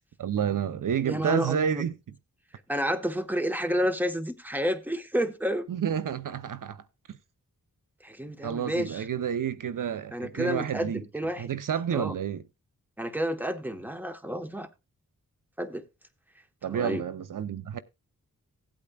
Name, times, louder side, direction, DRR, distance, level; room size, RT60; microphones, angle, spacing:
voice 1, 0.2-1.9 5.7-7.2 8.4-11.0 11.4-12.4 16.6-17.8, right 8 dB, 70° right, 0.7 m, -30 dB
voice 2, 1.1-1.8 2.7-5.7 8.0-9.0 10.1-11.5 11.9-12.1 13.0-14.7 15.6-15.8 16.7-17.0, equal, 5° right, 1.1 m, -30 dB
16.5 x 8.6 x 2.3 m
wide cardioid pair, 75°, 33 cm